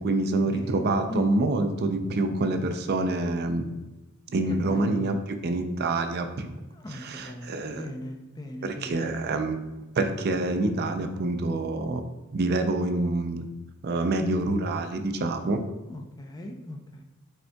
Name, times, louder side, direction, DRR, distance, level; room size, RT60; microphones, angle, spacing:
voice 1, 0.0-3.7 4.3-6.5 6.9-7.9 8.6-12.0 12.3-13.5 13.8-15.6, right 2 dB, 50° right, 7 dB, 0.4 m, -27 dB
voice 2, 4.6-5.1 6.8-9.1 15.9-17.0, left 1 dB, 20° left, 4 dB, 0.4 m, -38 dB
5.2 x 3.6 x 2.2 m, 1.1 s
head